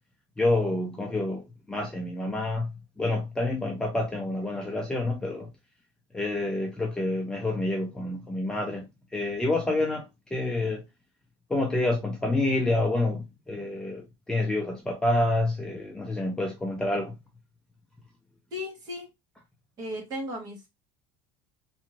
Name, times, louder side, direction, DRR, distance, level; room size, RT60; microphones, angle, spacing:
voice 1, 0.4-5.5 6.1-8.8 9.1-10.0 10.3-10.8 11.5-17.1, left 2 dB, 5° left, 0.5 m, -28 dB
voice 2, 18.5-19.1 19.8-20.7, left 1 dB, 35° right, 1.5 m, -35 dB
3.5 x 2.7 x 3.0 m
cardioid pair, 170°, 11 cm